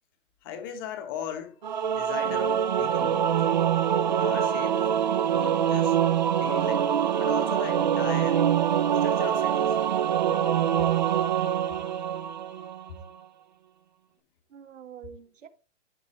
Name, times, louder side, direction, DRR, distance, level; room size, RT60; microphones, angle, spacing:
voice 1, 0.4-1.5 1.8-3.4 4.2-4.9 5.2-6.0 6.4-8.5 8.9-9.8, left 8 dB, 20° left, 0.9 m, -38 dB
Singing / Musical instrument, 1.6-12.9, right 9 dB, 40° right, 0.4 m, -24 dB
voice 2, 14.5-15.5, right 8 dB, 80° right, 1.5 m, -47 dB
13.0 x 4.7 x 3.0 m
hypercardioid pair, 165°, 37 cm